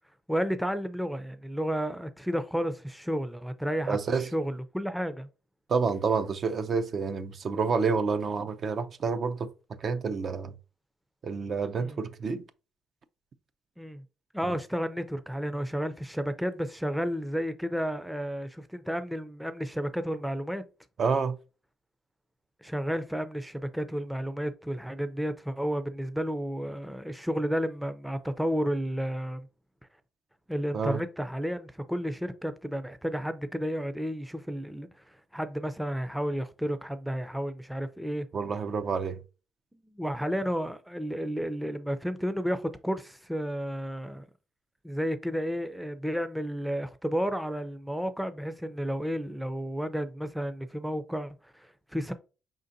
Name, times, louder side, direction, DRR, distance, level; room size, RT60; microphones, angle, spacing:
voice 1, 0.3-4.0 4.3-5.3 11.8-12.0 13.8-14.0 14.3-20.6 22.6-29.5 30.5-34.9 35.3-38.3 39.7-44.2 44.8-51.7 51.9-52.1, equal, 5° right, 0.5 m, -32 dB
voice 2, 3.9-4.3 5.7-10.5 11.2-12.4 14.4-14.6 21.0-21.4 30.7-31.0 38.3-39.2, right 5 dB, 50° right, 0.5 m, -29 dB
5.0 x 3.8 x 2.7 m
cardioid pair, 90°, 0 cm